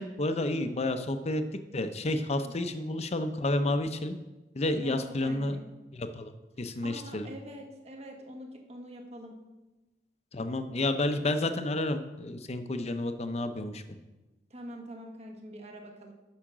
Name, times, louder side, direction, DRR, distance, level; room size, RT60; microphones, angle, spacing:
voice 1, 0.0-1.4 1.7-4.1 4.5-5.6 5.9-6.3 6.6-7.3 10.3-13.8, left 2 dB, 40° left, 8 dB, 0.7 m, -30 dB
voice 2, 0.5-0.9 2.4-2.7 4.8-5.7 6.6-9.4 14.5-16.1, equal, 40° right, 3 dB, 1.2 m, -45 dB
8.6 x 5.7 x 6.1 m, 1.1 s
head